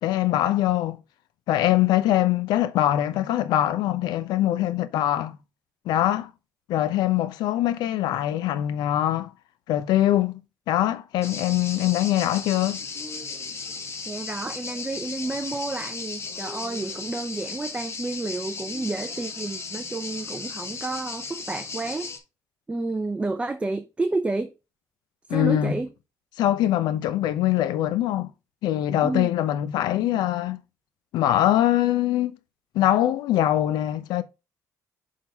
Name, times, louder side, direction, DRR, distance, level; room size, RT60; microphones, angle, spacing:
voice 1, 0.0-1.0 1.5-5.3 5.9-6.3 6.7-9.3 9.7-10.4 10.7-12.8 25.3-25.7 26.4-28.3 28.6-30.6 31.1-32.4 32.7-34.2, left 13 dB, 85° left, 0.6 m, -23 dB
sound 1, 11.2-22.2, left 4 dB, 40° left, 1.2 m, -36 dB
voice 2, 14.1-22.1 22.7-24.5 25.3-25.9 29.0-29.3, right 2 dB, 15° right, 0.6 m, -30 dB
6.2 x 3.7 x 4.7 m
cardioid pair, 105°, 7 cm